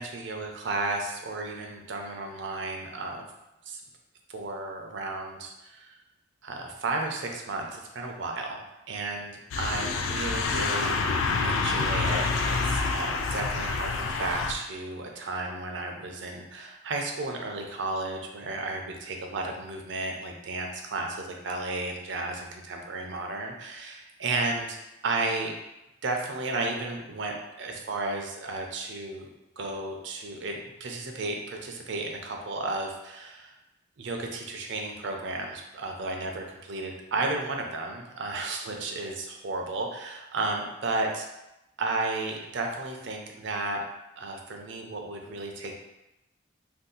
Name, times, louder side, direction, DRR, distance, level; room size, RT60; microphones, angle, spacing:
voice 1, 0.0-3.2 3.7-3.8 4.3-6.0 6.4-8.6 8.9-24.8 25.0-25.5 26.0-29.3 29.6-33.5 34.0-41.2 41.8-43.8 44.2-45.8, right 2 dB, 60° right, 2 dB, 0.5 m, -33 dB
sound 1, 9.5-14.5, left 4 dB, 80° left, 0.3 m, -27 dB
2.6 x 2.3 x 3.8 m, 0.93 s
head